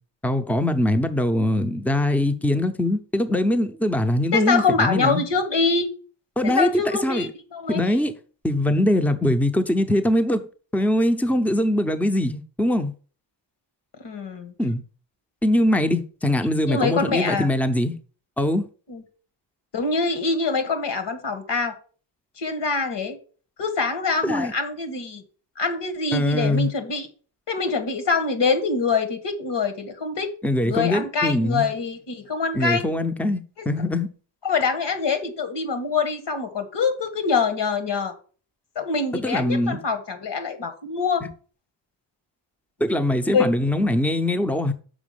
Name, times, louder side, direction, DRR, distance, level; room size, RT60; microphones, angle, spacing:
voice 1, 0.2-5.2 6.4-6.7 7.0-7.3 7.7-8.1 8.4-10.5 10.7-12.9 14.6-14.8 15.4-17.9 18.4-18.7 24.2-24.5 26.1-26.7 30.4-31.7 32.5-34.1 39.2-39.8 42.8-44.7, left 1 dB, 5° left, 0.7 m, -22 dB
voice 2, 4.3-5.9 6.4-8.0 14.0-14.5 16.7-17.5 18.9-19.0 19.7-21.7 22.4-23.2 23.6-25.2 25.6-27.1 27.5-30.3 30.6-32.9 33.6-33.7 34.4-38.1 38.8-41.2 42.9-43.0 43.3-43.6, left 4 dB, 65° left, 1.8 m, -24 dB
6.3 x 4.9 x 6.5 m
cardioid pair, 95°, 46 cm